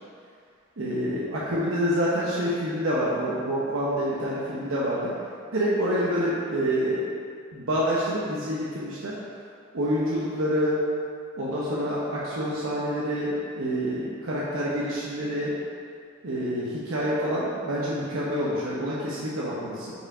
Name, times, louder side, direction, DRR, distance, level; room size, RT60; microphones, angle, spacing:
voice 1, 0.8-5.2 5.5-7.0 7.5-9.1 9.7-10.8 11.4-15.5 16.2-19.9, equal, 75° right, -7 dB, 1.0 m, -27 dB
5.4 x 4.8 x 4.9 m, 2.3 s
head